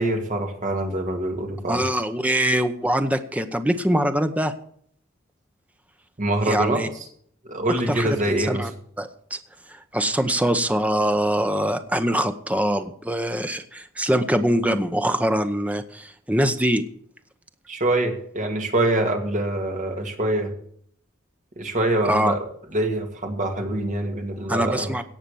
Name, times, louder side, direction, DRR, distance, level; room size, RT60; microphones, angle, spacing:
voice 1, 0.0-1.8 6.2-7.1 7.5-8.7 17.7-20.5 21.6-22.4 22.7-24.9, right 1 dB, 40° right, 4 dB, 2.2 m, -25 dB
voice 2, 1.7-4.5 6.5-6.9 7.9-8.7 9.0-9.4 9.7-16.8 22.0-22.3 24.5-25.0, equal, 5° right, 9 dB, 0.8 m, -23 dB
17.0 x 5.9 x 7.0 m, 0.62 s
head